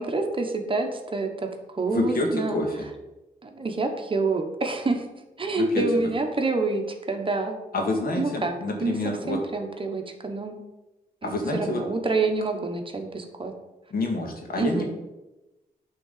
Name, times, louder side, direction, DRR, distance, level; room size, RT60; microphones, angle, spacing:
voice 1, 0.0-1.5 1.7-2.6 3.4-5.0 5.4-7.6 8.2-8.5 8.8-9.0 9.3-10.6 11.2-13.5 14.6-14.9, right 3 dB, 35° right, 4 dB, 1.2 m, -27 dB
voice 2, 1.9-2.7 5.6-5.8 7.7-9.4 11.2-11.8 13.9-14.9, left 2 dB, 70° left, 2 dB, 1.9 m, -27 dB
8.8 x 3.8 x 6.7 m, 1.0 s
cardioid pair, 90°, 16 cm